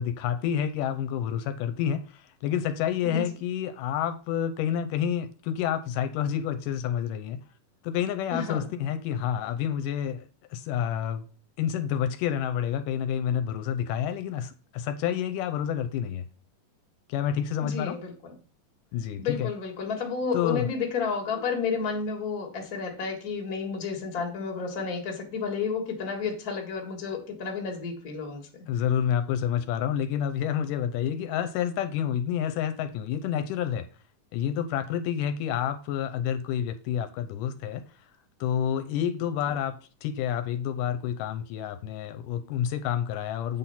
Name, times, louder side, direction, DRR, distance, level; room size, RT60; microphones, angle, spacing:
voice 1, 0.0-7.4 7.8-11.2 11.6-16.2 17.1-18.0 18.9-19.5 20.3-20.7 28.7-33.9 34.3-37.8 38.4-43.6, left 9 dB, 85° left, 2.2 m, -29 dB
voice 2, 8.3-8.7 17.6-18.1 19.2-28.5, left 5 dB, 35° left, 1.7 m, -31 dB
8.4 x 4.3 x 5.7 m
omnidirectional pair, 3.8 m